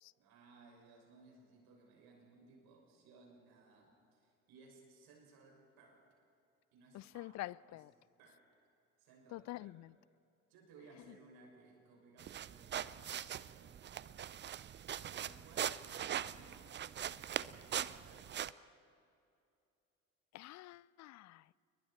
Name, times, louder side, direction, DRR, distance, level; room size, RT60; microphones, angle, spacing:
voice 1, 0.2-6.1 6.7-7.3 7.7-7.8 8.2-8.5 9.0-9.7 10.5-13.8 14.8-16.8 17.5-18.4, right 3 dB, 60° right, 6.2 m, -62 dB
voice 2, 6.9-7.9 9.3-10.0 11.1-11.2 20.3-21.5, left 17 dB, 45° left, 0.5 m, -47 dB
sound 1, 12.2-18.5, right 10 dB, 25° right, 0.5 m, -41 dB
29.0 x 22.0 x 4.4 m
hypercardioid pair, 60°, 41 cm